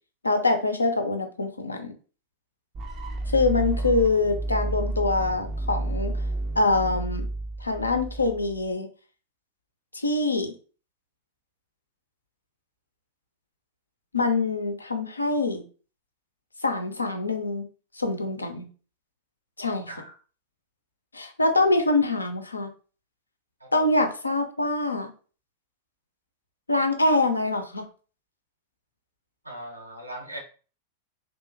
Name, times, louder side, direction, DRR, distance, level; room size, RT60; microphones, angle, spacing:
voice 1, 0.2-1.9 3.3-6.1 6.6-7.3 7.6-8.9 9.9-10.5 14.1-15.6 16.6-17.6 17.9-18.7 19.6-19.9 21.1-22.7 23.7-25.1 26.7-27.8, left 2 dB, 80° left, 5 dB, 0.5 m, -24 dB
sound 1, 2.7-8.7, right 2 dB, 30° right, 0.4 m, -31 dB
voice 2, 29.4-30.4, right 1 dB, 85° right, 1 dB, 0.6 m, -40 dB
2.8 x 2.3 x 2.4 m, 0.37 s
figure-of-eight pair, 90°, 0 cm